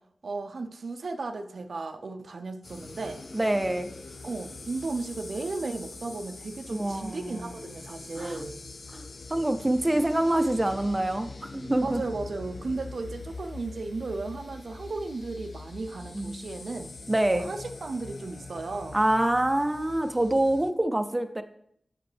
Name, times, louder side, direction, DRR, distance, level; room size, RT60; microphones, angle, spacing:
voice 1, 0.2-3.3 4.2-8.6 11.8-16.9 17.3-19.0, right 3 dB, 80° right, 0.5 m, -35 dB
sound 1, 2.6-20.7, left 3 dB, 75° left, 0.5 m, -44 dB
voice 2, 3.3-3.9 6.7-7.5 8.2-8.4 8.9-9.0 9.3-12.0 16.1-16.3 17.1-17.5 18.9-21.4, right 1 dB, 20° right, 0.5 m, -26 dB
8.0 x 5.9 x 3.3 m
wide cardioid pair, 65°, 0 cm